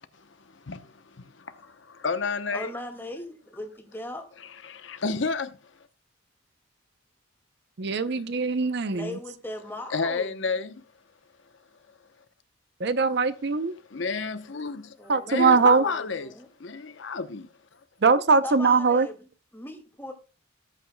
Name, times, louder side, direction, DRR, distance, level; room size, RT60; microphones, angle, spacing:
voice 1, 0.6-2.7 4.6-5.6 8.1-8.2 9.9-10.8 13.9-16.3 16.6-17.5, left 4 dB, 65° left, 0.8 m, -31 dB
voice 2, 2.5-4.3 8.9-10.4 15.0-16.5 18.4-19.3 19.5-20.1, left 1 dB, 10° left, 2.1 m, -38 dB
voice 3, 7.8-9.1 12.8-13.7 15.1-15.8 18.0-19.1, right 4 dB, 55° right, 0.6 m, -21 dB
18.5 x 8.7 x 2.2 m
head